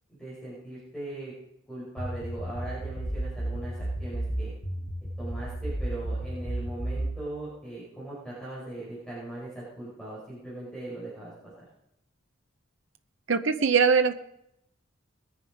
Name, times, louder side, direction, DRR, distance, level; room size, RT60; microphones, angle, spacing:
voice 1, 0.1-1.3 1.7-4.5 5.2-11.7, right 1 dB, 5° left, -9 dB, 5.4 m, -39 dB
sound 1, 2.0-7.2, right 1 dB, 65° left, 3.4 m, -33 dB
voice 2, 13.3-14.2, right 5 dB, 65° right, 9 dB, 0.8 m, -22 dB
21.0 x 10.5 x 5.1 m, 0.82 s
head